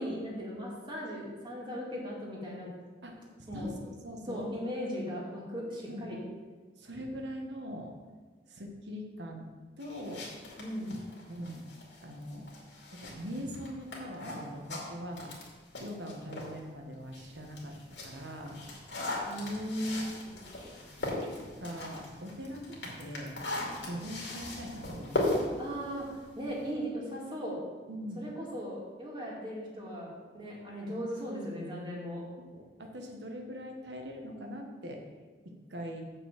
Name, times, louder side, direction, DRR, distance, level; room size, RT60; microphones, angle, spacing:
voice 1, 0.0-2.7 3.5-3.7 4.3-6.2 10.6-10.9 19.3-20.5 25.6-26.1 26.4-27.6 28.2-32.2, equal, 25° right, -4 dB, 2.2 m, -37 dB
voice 2, 3.0-4.5 5.9-6.1 6.8-7.9 8.5-9.5 9.8-10.3 11.3-11.7 12.0-12.5 12.9-15.3 15.8-17.7 18.0-18.6 21.0-23.4 23.8-25.5 27.9-28.3 32.4-35.1 35.4-36.0, equal, 75° right, 2 dB, 1.4 m, -42 dB
sound 1, 9.8-16.6 17.0-26.7, left 1 dB, 85° left, 2.3 m, -39 dB
7.1 x 5.4 x 7.2 m, 1.4 s
head